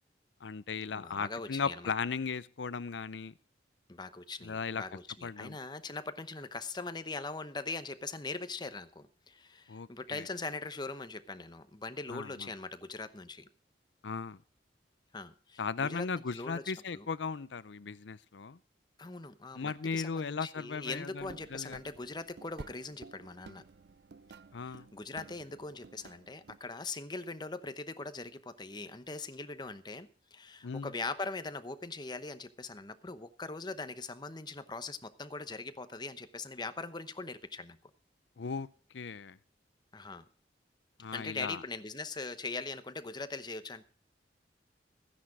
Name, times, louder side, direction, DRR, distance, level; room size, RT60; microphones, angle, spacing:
voice 1, 0.4-3.3 4.4-4.8 5.2-5.5 9.7-10.2 12.1-12.5 14.0-14.4 15.6-18.6 19.5-21.8 24.5-24.9 30.6-30.9 38.4-38.7 38.9-39.4 41.0-41.6, left 5 dB, 80° left, 18 dB, 0.6 m, -37 dB
voice 2, 0.9-1.9 3.9-13.5 15.1-16.6 16.9-17.1 19.0-23.6 24.6-37.8 39.9-40.2 41.1-43.8, left 3 dB, 25° left, 11 dB, 0.9 m, -41 dB
sound 1, 21.2-26.6, right 4 dB, 65° right, 0.5 m, -53 dB
14.5 x 10.0 x 4.9 m, 0.41 s
head